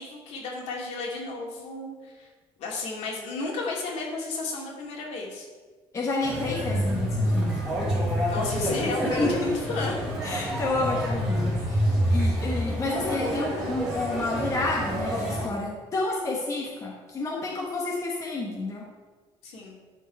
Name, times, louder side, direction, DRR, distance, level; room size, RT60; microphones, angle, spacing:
voice 1, 0.0-2.3 2.6-5.5 8.3-9.9 12.1-12.2 19.4-19.8, left 3 dB, 70° left, -2 dB, 2.5 m, -33 dB
voice 2, 5.9-7.5 9.2-9.5 10.2-11.8 12.1-18.9, left 2 dB, 25° left, -2 dB, 1.1 m, -30 dB
sound 1, 6.2-15.4, equal, 5° right, 2.9 m, -27 dB
12.5 x 4.6 x 4.5 m, 1.4 s
cardioid pair, 165°, 12 cm